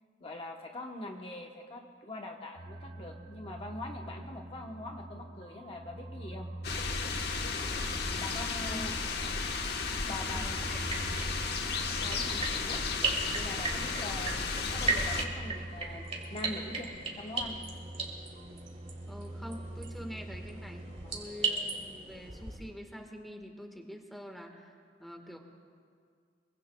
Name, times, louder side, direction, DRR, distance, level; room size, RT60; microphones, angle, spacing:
voice 1, 0.2-6.5 8.2-8.9 10.1-10.6 11.9-12.8 13.3-14.4 14.7-17.6 21.0-21.2, left 2 dB, 35° left, 1 dB, 1.0 m, -43 dB
sound 1, 2.6-21.2, right 1 dB, 55° right, 1.2 m, -45 dB
sound 2, 6.6-15.3, left 4 dB, 65° left, 1.1 m, -34 dB
voice 2, 7.6-8.9 10.3-11.0 13.7-14.0 19.1-25.4, equal, ahead, 2 dB, 1.4 m, -46 dB
sound 3, 10.8-22.6, right 4 dB, 40° right, 3.0 m, -37 dB
25.0 x 23.5 x 2.3 m, 2.2 s
head